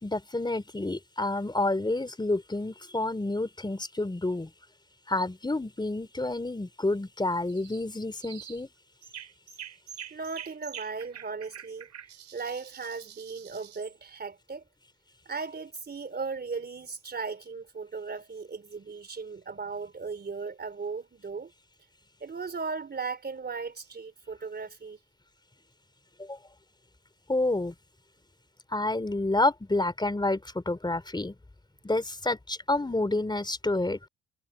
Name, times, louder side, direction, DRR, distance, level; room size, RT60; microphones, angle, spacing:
voice 1, 0.0-4.5 5.1-8.7 26.2-26.4 27.3-27.7 28.7-31.3 31.8-34.0, left 2 dB, 15° left, 4.0 m, -29 dB
sound 1, 7.5-7.8 8.2-8.6 9.0-14.0, right 9 dB, 65° right, 4.8 m, -46 dB
voice 2, 10.1-11.9 12.3-14.6 15.3-21.5 22.2-25.0, right 4 dB, 35° right, 3.5 m, -37 dB
cardioid pair, 90°, 30 cm